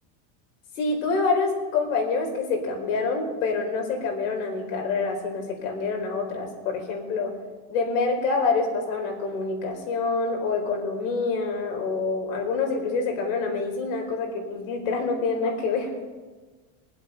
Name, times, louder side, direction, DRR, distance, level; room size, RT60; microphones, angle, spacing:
voice 1, 0.8-7.3 7.7-15.9, left 4 dB, 75° left, 1 dB, 4.4 m, -26 dB
23.0 x 7.9 x 5.6 m, 1.3 s
cardioid pair, 175°, 39 cm